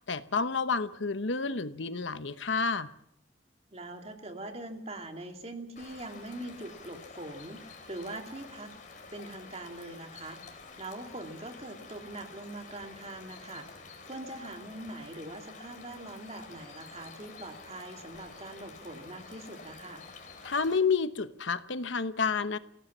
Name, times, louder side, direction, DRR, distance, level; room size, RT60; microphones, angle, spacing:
voice 1, 0.0-2.9 20.4-22.6, left 5 dB, 70° left, 12 dB, 1.0 m, -30 dB
voice 2, 3.7-7.6 7.9-8.7 9.1-10.4 10.8-13.7 14.0-20.0, right 1 dB, 30° right, 4 dB, 2.6 m, -42 dB
sound 1, 5.8-20.8, left 4 dB, 40° left, 4.1 m, -49 dB
26.5 x 17.5 x 7.4 m, 0.78 s
head